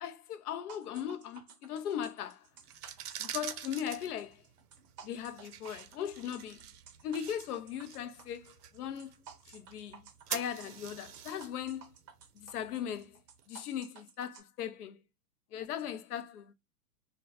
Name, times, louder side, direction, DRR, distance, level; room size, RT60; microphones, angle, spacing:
voice 1, 0.0-2.5 3.2-4.4 5.0-6.6 7.0-9.1 9.5-10.0 10.3-11.9 12.4-13.2 13.5-15.0 15.5-16.5, left 9 dB, 70° left, 0.5 m, -38 dB
sound 1, 0.7-14.4, right 6 dB, 30° right, 0.5 m, -54 dB
sound 2, 2.6-13.4, right 10 dB, 70° right, 0.6 m, -46 dB
2.2 x 2.1 x 2.7 m
hypercardioid pair, 115°, 48 cm